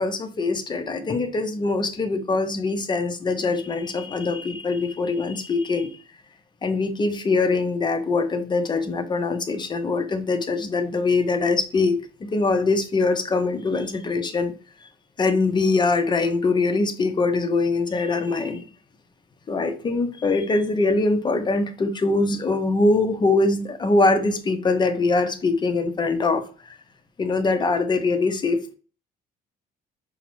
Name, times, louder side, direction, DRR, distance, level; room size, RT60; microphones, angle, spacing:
voice 1, 0.0-5.9 6.6-14.5 15.2-18.7 19.5-26.7 27.2-28.7, left 3 dB, 25° left, 0.6 m, -23 dB
4.7 x 2.1 x 3.0 m
cardioid pair, 110°, 17 cm